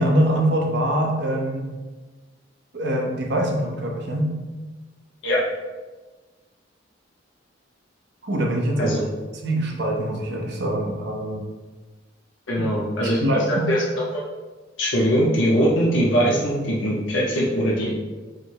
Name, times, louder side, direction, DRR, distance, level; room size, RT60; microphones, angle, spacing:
voice 1, 0.0-1.7 2.7-4.3 8.2-8.9 9.4-11.4 13.2-13.7, right 1 dB, 60° right, 0 dB, 0.7 m, -23 dB
voice 2, 12.5-14.2 14.8-17.9, equal, 80° left, -5 dB, 0.7 m, -21 dB
4.9 x 2.0 x 4.5 m, 1.3 s
head